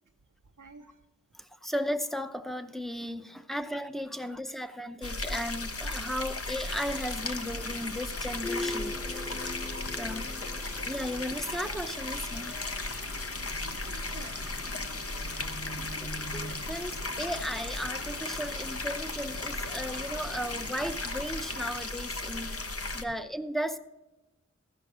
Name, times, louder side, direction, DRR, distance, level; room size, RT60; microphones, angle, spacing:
voice 1, 0.6-1.0 10.6-10.7 12.7-12.8 13.5-15.3 15.8-15.9, right 4 dB, 90° right, 2 dB, 0.8 m, -52 dB
voice 2, 1.4-9.4 10.0-10.3 10.9-12.6 15.8-16.1 16.7-22.6 22.9-23.8, equal, ahead, 10 dB, 0.7 m, -35 dB
sound 1, 5.0-23.0, left 2 dB, 50° left, 0.8 m, -36 dB
sound 2, 6.6-21.7, left 2 dB, 85° left, 1.5 m, -47 dB
sound 3, 8.4-11.5 13.8-16.5, left 1 dB, 20° left, 1.0 m, -41 dB
14.0 x 6.0 x 6.1 m, 1.0 s
wide cardioid pair, 45°, 30 cm